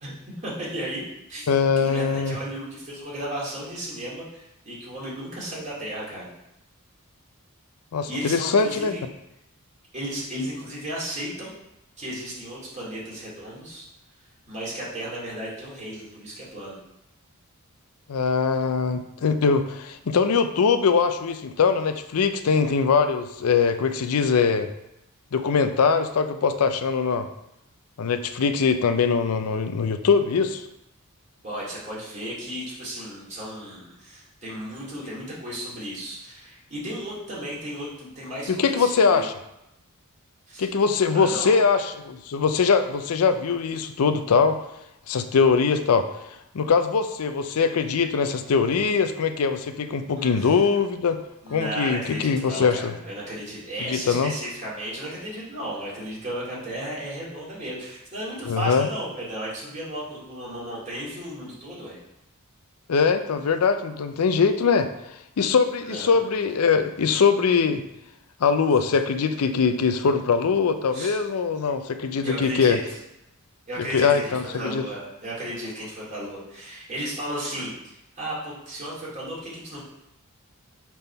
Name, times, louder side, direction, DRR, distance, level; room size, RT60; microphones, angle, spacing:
voice 1, 0.4-1.0 1.3-1.5 1.8-6.3 8.1-9.0 9.9-11.5 12.0-13.9 14.5-16.8 31.4-39.2 40.5-40.7 41.1-41.6 50.2-50.6 51.4-62.0 65.8-66.2 70.9-71.2 72.2-73.0 73.7-79.8, right 1 dB, 35° right, -7 dB, 2.5 m, -34 dB
voice 2, 1.5-2.4 7.9-9.0 18.1-24.7 25.3-27.3 28.0-30.6 38.5-39.3 40.6-44.6 45.1-46.1 46.5-51.2 51.5-52.9 53.9-54.3 58.5-58.9 62.9-64.9 65.4-67.8 68.4-72.8 73.9-74.9, left 5 dB, 85° left, 9 dB, 0.5 m, -22 dB
5.9 x 3.6 x 5.5 m, 0.86 s
head